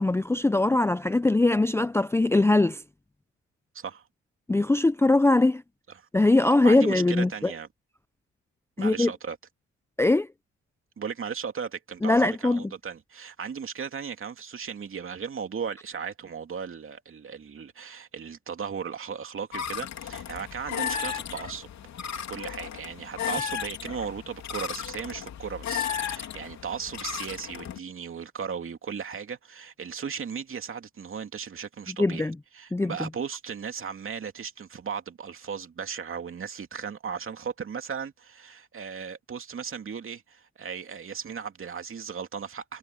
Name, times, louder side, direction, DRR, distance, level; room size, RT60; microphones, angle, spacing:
voice 1, 0.0-2.8 4.5-5.6 6.1-7.5 8.8-9.1 10.0-10.3 12.0-12.6 32.0-32.3 32.7-32.9, left 2 dB, 10° left, 0.5 m, -21 dB
voice 2, 3.7-4.1 5.9-6.1 6.6-7.7 8.8-9.4 11.0-21.7 22.3-32.3 32.5-42.8, right 6 dB, 45° right, 2.7 m, -36 dB
sound 1, 19.5-27.8, left 8 dB, 65° left, 3.2 m, -34 dB
cardioid pair, 90°, 30 cm